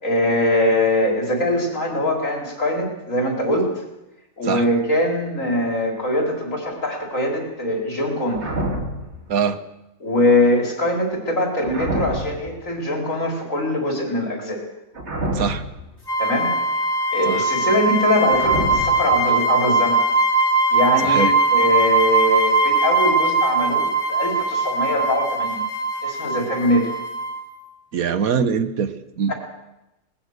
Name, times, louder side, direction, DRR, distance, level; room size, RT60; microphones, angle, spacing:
voice 1, 0.0-3.7 4.4-8.5 10.0-14.6 16.2-16.5 17.1-20.0 20.7-25.6 26.0-26.9 29.3-29.4, left 1 dB, 65° left, 1 dB, 4.8 m, -22 dB
sound 1, 8.3-9.2 11.6-12.5 14.9-15.9 18.3-19.1, right 1 dB, 50° right, 2.7 m, -27 dB
sound 2, 16.1-27.5, right 2 dB, 30° left, 2.5 m, -20 dB
voice 2, 27.9-29.3, right 6 dB, 80° right, 11 dB, 1.5 m, -23 dB
20.5 x 19.5 x 6.6 m, 0.92 s
omnidirectional pair, 1.5 m